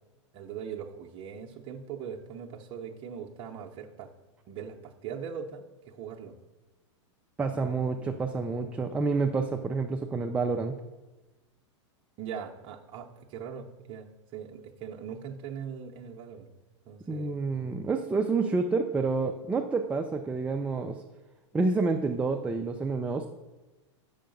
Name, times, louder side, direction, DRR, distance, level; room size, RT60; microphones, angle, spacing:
voice 1, 0.3-4.1 4.5-6.3 7.5-8.1 12.2-16.5 16.9-17.4, right 7 dB, 35° right, 0 dB, 0.7 m, -41 dB
voice 2, 7.4-10.8 17.1-21.0 21.5-23.3, right 4 dB, 10° right, 3 dB, 0.4 m, -28 dB
6.7 x 5.6 x 5.2 m, 1.1 s
hypercardioid pair, 130°, 15 cm